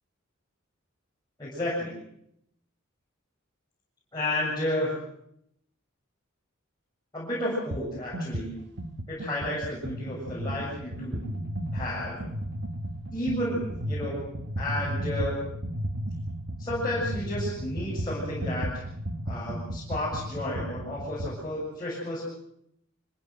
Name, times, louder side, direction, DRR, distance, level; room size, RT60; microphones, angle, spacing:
voice 1, 1.4-1.9 4.1-4.9 7.1-8.5 9.1-11.2 11.7-12.2 13.1-14.3 14.6-15.4 16.6-18.7 19.3-22.3, left 1 dB, 20° left, -8 dB, 7.6 m, -31 dB
sound 1, 7.7-7.9 8.1-21.4, right 1 dB, 60° right, 1.5 m, -34 dB
25.0 x 16.5 x 8.0 m, 0.75 s
head